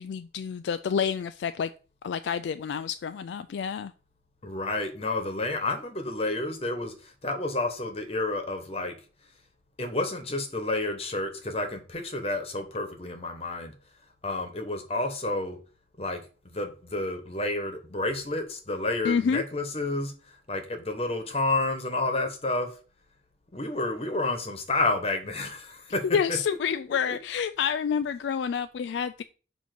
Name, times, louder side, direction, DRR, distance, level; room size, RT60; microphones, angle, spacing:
voice 1, 0.0-1.7 2.0-3.9 19.0-19.4 26.0-29.2, left 7 dB, 85° left, 0.3 m, -28 dB
voice 2, 4.4-9.0 9.8-13.7 14.2-15.6 16.0-16.2 16.5-22.8 23.5-26.4 26.7-26.8 27.1-27.2, left 2 dB, 35° left, 1.1 m, -30 dB
6.9 x 2.9 x 5.9 m
head